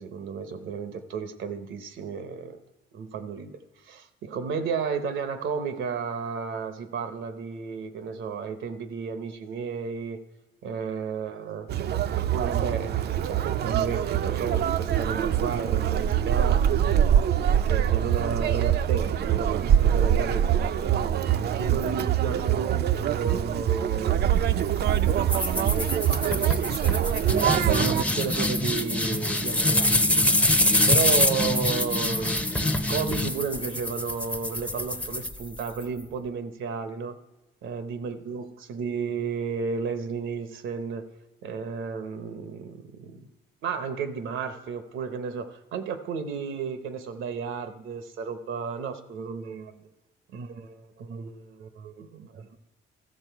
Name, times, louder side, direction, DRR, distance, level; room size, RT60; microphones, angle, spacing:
voice 1, 0.0-2.6 2.9-3.6 3.8-10.2 10.6-11.7 12.1-16.6 17.4-20.5 20.8-26.1 27.0-30.3 30.9-37.1 37.6-41.1 41.4-43.3 43.6-49.9 50.3-52.6, right 5 dB, 80° right, 10 dB, 0.8 m, -33 dB
Conversation, 11.7-28.0, right 10 dB, 55° right, 0.4 m, -24 dB
sound 1, 25.3-35.8, left 1 dB, 5° left, 0.6 m, -25 dB
14.5 x 6.4 x 4.6 m, 1.1 s
cardioid pair, 90°, 20 cm